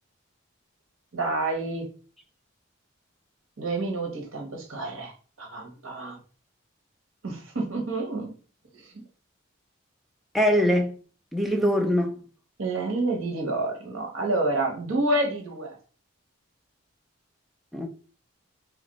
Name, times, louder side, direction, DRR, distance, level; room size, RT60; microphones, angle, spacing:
voice 1, 1.1-1.9 3.6-5.1 5.4-6.2 7.2-8.3 8.7-9.0 12.6-15.8, right 2 dB, 75° right, 1.0 m, -28 dB
voice 2, 10.3-10.9 11.3-12.2 17.7-17.9, equal, ahead, 0.4 m, -22 dB
2.9 x 2.5 x 4.0 m
head